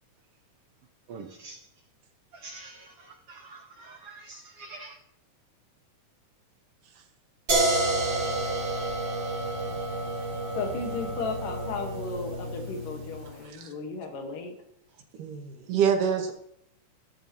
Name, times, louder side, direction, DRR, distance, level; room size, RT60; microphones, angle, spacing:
voice 1, 1.1-1.6 2.4-2.9 3.3-4.9, right 3 dB, 65° right, 1.5 m, -45 dB
sound 1, 7.5-13.3, right 2 dB, 40° right, 3.7 m, -29 dB
voice 2, 10.5-14.5, left 4 dB, 90° left, 3.2 m, -35 dB
voice 3, 15.2-16.3, right 7 dB, 80° right, 3.1 m, -26 dB
15.5 x 12.5 x 3.0 m
omnidirectional pair, 3.7 m